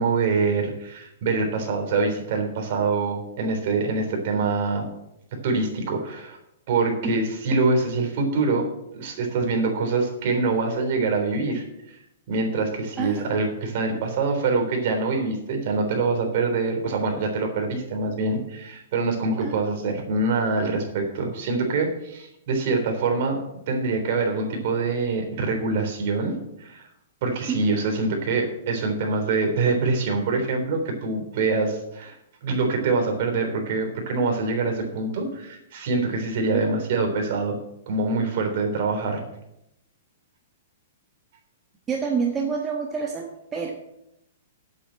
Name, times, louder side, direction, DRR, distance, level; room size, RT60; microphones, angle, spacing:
voice 1, 0.0-4.9 5.4-6.4 6.7-8.7 8.9-11.6 12.3-23.4 23.7-26.3 26.6-26.9 27.2-32.2 32.4-37.6 37.9-39.2, right 3 dB, 50° right, 2 dB, 3.6 m, -25 dB
voice 2, 13.0-13.3 19.4-19.5 27.5-27.7 41.9-43.7, right 5 dB, 15° right, 0 dB, 1.3 m, -27 dB
8.9 x 8.3 x 7.7 m, 0.82 s
hypercardioid pair, 160°, 0 cm